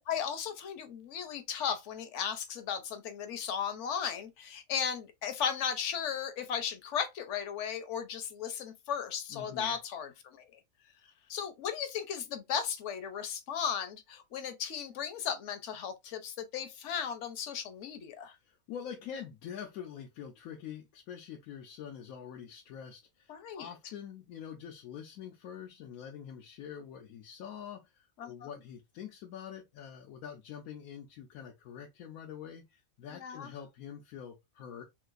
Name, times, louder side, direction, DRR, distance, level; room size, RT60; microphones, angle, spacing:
voice 1, 0.0-10.4 11.3-18.4 23.3-23.7 28.2-28.5 33.1-33.5, left 8 dB, 65° left, 0.9 m, -36 dB
voice 2, 9.3-9.8 18.4-34.8, left 8 dB, 90° left, 1.0 m, -45 dB
3.8 x 2.4 x 2.4 m
omnidirectional pair, 1.4 m